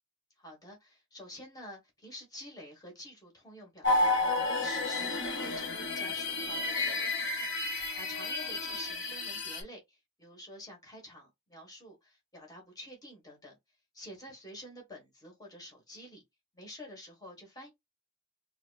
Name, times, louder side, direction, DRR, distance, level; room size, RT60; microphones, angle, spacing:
voice 1, 0.4-7.3 8.0-13.5 13.9-16.2 16.5-17.7, left 1 dB, 20° left, 1.5 m, -49 dB
sound 1, 3.8-9.6, left 2 dB, 55° left, 0.9 m, -31 dB
4.0 x 2.9 x 2.4 m
head